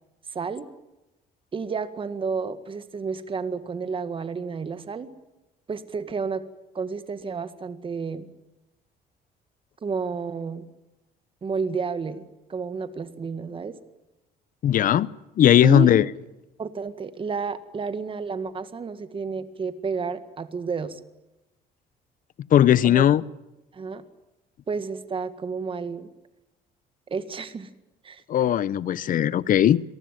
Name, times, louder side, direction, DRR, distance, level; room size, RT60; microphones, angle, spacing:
voice 1, 0.3-0.7 1.5-5.1 5.7-6.4 6.7-8.3 9.8-10.6 11.4-12.2 12.5-13.8 15.6-15.9 16.6-21.0 22.8-23.0 23.7-24.0 24.7-26.1 27.1-27.7 28.0-28.2, right 5 dB, 30° right, 1.9 m, -31 dB
voice 2, 14.6-15.1 15.4-16.0 22.5-23.2 28.3-29.8, left 11 dB, 55° left, 0.8 m, -18 dB
27.0 x 19.0 x 9.2 m
cardioid pair, 110°, 17 cm